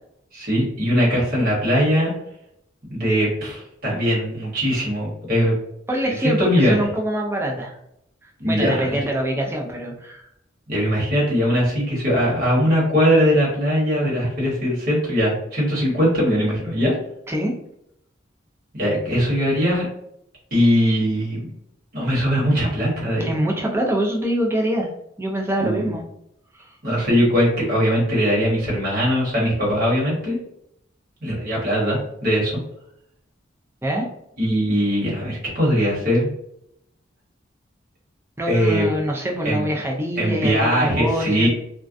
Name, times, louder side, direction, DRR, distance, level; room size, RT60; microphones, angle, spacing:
voice 1, 0.3-2.1 2.9-5.5 6.1-6.9 8.4-9.0 10.7-17.0 18.7-19.9 20.5-21.5 21.9-23.3 25.6-25.9 26.8-30.4 31.2-32.6 34.4-36.3 38.5-38.9 39.4-39.7 40.2-41.5, equal, 45° right, -5 dB, 1.1 m, -20 dB
voice 2, 5.9-7.8 8.5-10.3 17.3-17.5 23.2-24.9 25.2-26.0 26.6-26.8 33.8-34.1 38.4-41.5, right 1 dB, 10° right, 0 dB, 0.4 m, -24 dB
2.3 x 2.2 x 2.5 m, 0.76 s
head